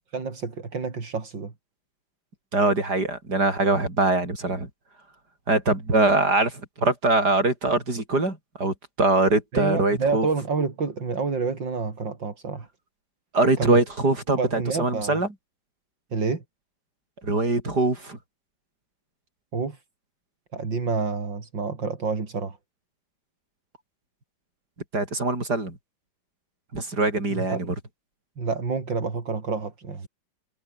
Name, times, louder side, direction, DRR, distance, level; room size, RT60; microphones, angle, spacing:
voice 1, 0.0-1.5 9.5-12.7 13.6-13.8 14.4-15.2 16.1-16.4 19.5-19.8 20.5-22.6 27.3-27.7 28.4-30.1, right 4 dB, 80° right, 4.1 m, -28 dB
voice 2, 2.5-4.7 5.5-10.3 13.3-15.3 17.2-18.2 24.9-25.8 26.7-27.7, right 2 dB, 60° right, 7.1 m, -23 dB
omnidirectional pair, 2.0 m